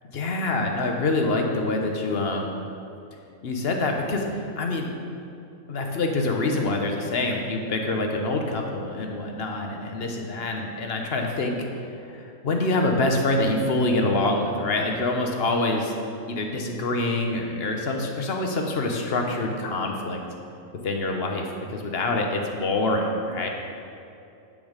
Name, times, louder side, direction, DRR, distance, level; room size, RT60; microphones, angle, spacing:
voice 1, 0.1-2.7 3.4-4.9 5.7-15.9 16.3-20.2 20.8-23.5, left 2 dB, 45° left, 2 dB, 1.1 m, -26 dB
8.5 x 7.1 x 5.1 m, 2.6 s
omnidirectional pair, 1.5 m